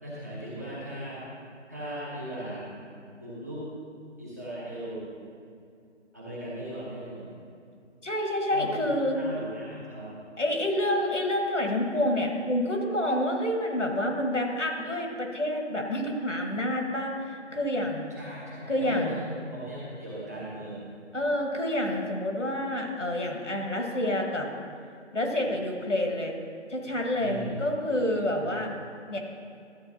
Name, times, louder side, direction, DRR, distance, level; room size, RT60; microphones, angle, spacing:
voice 1, 0.0-1.3 1.7-2.7 3.2-3.7 4.2-5.1 6.1-7.3 8.5-8.9 9.2-10.1 18.1-21.0 27.2-27.6 28.4-28.5, right 1 dB, 15° right, -8 dB, 0.9 m, -38 dB
voice 2, 8.0-9.2 10.4-18.1 18.7-19.2 21.1-24.5 25.1-26.4 26.7-28.7 29.1-29.2, left 1 dB, 85° left, 2 dB, 1.7 m, -28 dB
12.5 x 8.0 x 2.8 m, 2.4 s
figure-of-eight pair, 160°, 36 cm